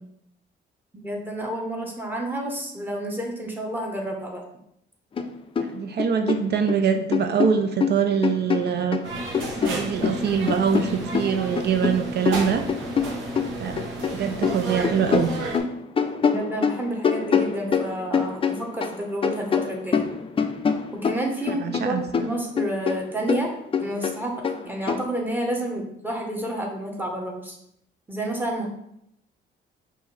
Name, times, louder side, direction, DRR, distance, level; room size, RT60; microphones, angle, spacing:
voice 1, 0.9-4.4 16.2-20.0 20.9-23.5 23.8-27.6 28.1-28.7, right 1 dB, 10° right, 0 dB, 1.1 m, -30 dB
sound 1, 5.2-5.3 5.6-6.8 7.1-9.1 9.3-14.1 14.4-19.0 19.2-21.9 22.1-25.0, left 6 dB, 25° left, 0.4 m, -25 dB
voice 2, 5.6-9.0 9.6-12.6 13.6-15.3 21.5-22.3, right 7 dB, 55° right, 6 dB, 0.5 m, -24 dB
sound 2, 9.0-15.6, right 1 dB, 80° right, 1.0 m, -32 dB
5.4 x 2.7 x 3.2 m, 0.76 s
cardioid pair, 90°, 20 cm